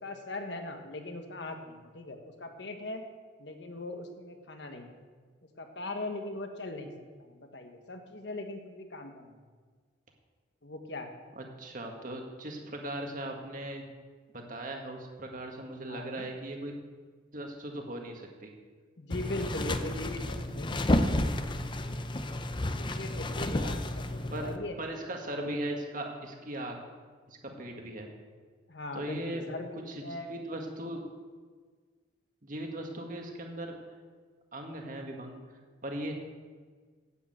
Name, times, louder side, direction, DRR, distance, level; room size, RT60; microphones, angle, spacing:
voice 1, 0.0-3.0 3.4-5.0 5.6-6.9 7.2-9.4 10.6-11.1 15.9-16.3 19.0-20.9 22.8-24.8 28.7-30.4, left 2 dB, 65° left, 5 dB, 1.4 m, -40 dB
voice 2, 11.4-13.8 14.3-16.8 17.3-18.5 20.1-20.4 24.3-26.8 27.3-28.1 28.9-29.4 29.9-31.0 32.4-33.7 34.5-35.4 35.8-36.1, right 1 dB, 45° right, 2 dB, 1.7 m, -38 dB
sound 1, 19.1-24.6, left 1 dB, 25° left, 0.6 m, -31 dB
9.8 x 8.8 x 7.6 m, 1.5 s
head